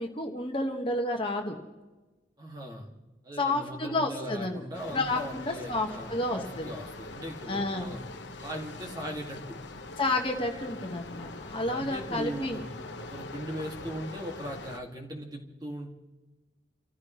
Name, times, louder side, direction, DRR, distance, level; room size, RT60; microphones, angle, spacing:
voice 1, 0.0-1.6 3.4-4.6 4.9-6.7 7.5-7.9 10.0-12.6, left 2 dB, 30° left, 2 dB, 1.6 m, -30 dB
voice 2, 2.4-2.9 3.2-8.0 8.4-9.6 11.5-12.7 13.0-15.9, equal, 20° right, 1 dB, 2.2 m, -39 dB
sound 1, 4.7-14.8, left 2 dB, 80° left, 1.2 m, -43 dB
30.0 x 15.0 x 3.2 m, 1.2 s
head